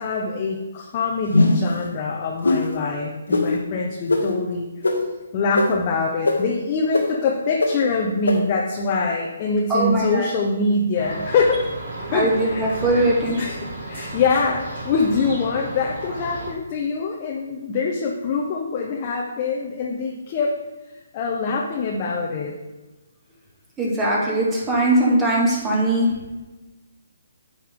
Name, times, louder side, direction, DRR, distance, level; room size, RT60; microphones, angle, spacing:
voice 1, 0.0-4.7 5.3-11.6 12.1-12.6 12.9-13.0 13.4-13.6 13.9-20.5 21.1-22.5, left 4 dB, 35° left, -2 dB, 1.0 m, -24 dB
sound 1, 1.3-1.7 2.4-2.6 3.3-3.4 4.1-4.2 4.8-4.9 5.5-5.6 6.2-6.3 6.9-7.0 7.6-7.7 8.3-8.4, left 2 dB, 90° left, 1.5 m, -18 dB
voice 2, 9.7-10.3 12.1-13.4 23.8-26.1, right 1 dB, 15° right, -4 dB, 2.2 m, -20 dB
sound 2, 10.9-16.5, right 1 dB, 55° right, 2.7 m, -34 dB
9.5 x 5.6 x 3.7 m, 1.1 s
hypercardioid pair, 150°, 0 cm